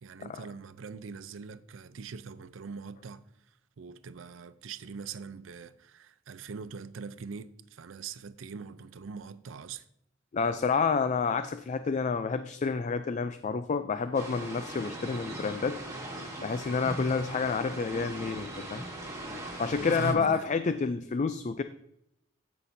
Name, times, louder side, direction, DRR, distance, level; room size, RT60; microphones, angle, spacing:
voice 1, 0.0-3.3 3.8-9.8 19.8-20.5, right 5 dB, 85° right, 0.5 m, -42 dB
voice 2, 10.3-16.0 16.4-18.8 19.6-21.6, left 5 dB, 40° left, 0.4 m, -29 dB
sound 1, 14.1-20.1, right 1 dB, 15° right, 1.7 m, -39 dB
14.0 x 5.9 x 2.7 m
head